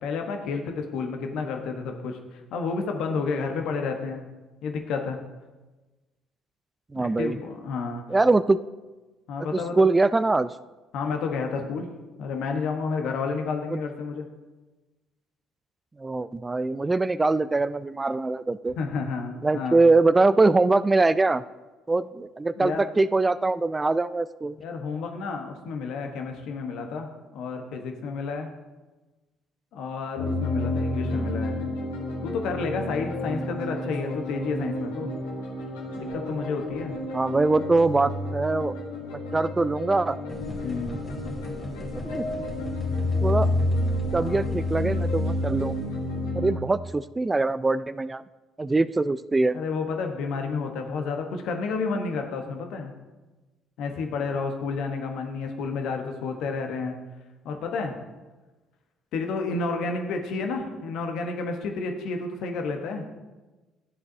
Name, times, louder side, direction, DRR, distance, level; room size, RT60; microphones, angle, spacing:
voice 1, 0.0-4.3 4.6-5.2 6.9-8.0 9.3-9.9 10.9-11.9 12.2-14.2 18.8-19.8 22.6-22.8 24.6-28.5 29.7-31.6 32.2-35.1 36.0-36.9 40.6-41.1 44.1-44.5 49.5-52.9 53.8-57.0 57.4-58.0 59.1-63.0, left 4 dB, 65° left, 4 dB, 1.1 m, -30 dB
voice 2, 6.9-7.4 8.1-8.6 9.5-10.5 13.7-13.8 16.0-18.7 19.4-21.4 21.9-24.6 37.1-38.7 39.3-40.2 41.8-42.2 43.2-43.5 44.1-45.7 46.3-48.2 48.6-49.6, right 3 dB, 20° right, 16 dB, 0.3 m, -23 dB
sound 1, 30.2-46.6, left 1 dB, 80° left, 1.8 m, -30 dB
sound 2, 40.3-46.2, left 1 dB, 25° left, 2.3 m, -39 dB
13.0 x 7.6 x 2.8 m, 1.2 s
hypercardioid pair, 55°, 0 cm